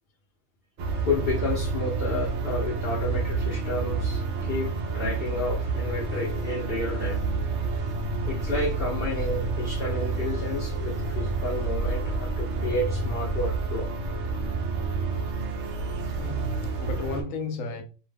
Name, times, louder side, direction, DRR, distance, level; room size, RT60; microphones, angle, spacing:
sound 1, 0.8-17.2, right 3 dB, 65° right, 0.9 m, -29 dB
voice 1, 1.0-7.2 8.3-13.9, left 2 dB, 55° left, 0.8 m, -31 dB
sound 2, 8.4-13.9, left 1 dB, 20° left, 0.3 m, -35 dB
voice 2, 16.2-17.8, left 3 dB, 80° left, 1.1 m, -33 dB
2.8 x 2.1 x 3.4 m
omnidirectional pair, 1.4 m